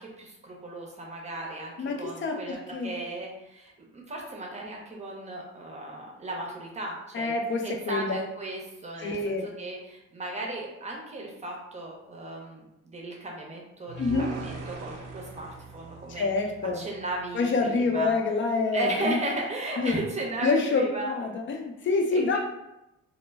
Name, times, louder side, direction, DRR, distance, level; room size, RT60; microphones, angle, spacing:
voice 1, 0.0-7.3 7.6-9.2 9.6-12.7 12.9-16.3 16.7-18.1 18.7-21.1 22.1-22.4, right 2 dB, 25° right, -2 dB, 0.7 m, -36 dB
voice 2, 1.8-2.9 7.1-8.2 9.0-9.4 14.0-14.3 16.1-16.8 17.3-19.2 19.8-20.0 20.4-22.4, left 3 dB, 40° left, 2 dB, 0.5 m, -27 dB
sound 1, 13.9-17.1, right 4 dB, 55° right, 0.6 m, -40 dB
2.1 x 2.1 x 3.3 m, 0.92 s
cardioid pair, 90°, 30 cm